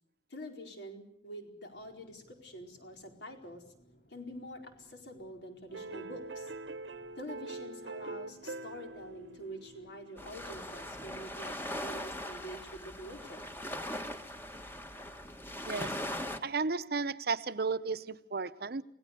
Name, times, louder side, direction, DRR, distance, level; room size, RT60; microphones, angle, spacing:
voice 1, 0.3-3.6 4.1-6.5 7.2-13.5, equal, 70° left, 4.5 m, -46 dB
sound 1, 1.7-9.9, equal, 85° left, 4.1 m, -65 dB
sound 2, 5.7-10.8, right 2 dB, 80° right, 1.1 m, -44 dB
sound 3, 10.2-16.4, left 1 dB, 10° left, 1.5 m, -40 dB
voice 2, 16.4-18.8, right 4 dB, 55° right, 0.8 m, -33 dB
29.0 x 17.5 x 6.8 m
head